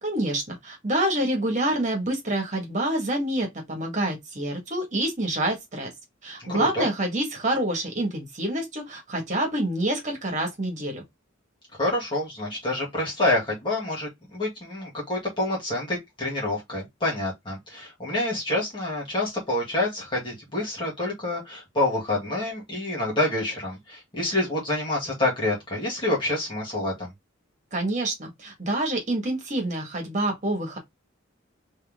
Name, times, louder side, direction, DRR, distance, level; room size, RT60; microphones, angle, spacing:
voice 1, 0.0-5.9 6.2-11.0 27.7-30.8, right 1 dB, 35° right, 1.9 m, -27 dB
voice 2, 6.4-6.9 11.8-27.1, left 2 dB, 25° left, 2.7 m, -27 dB
4.4 x 3.2 x 3.8 m
head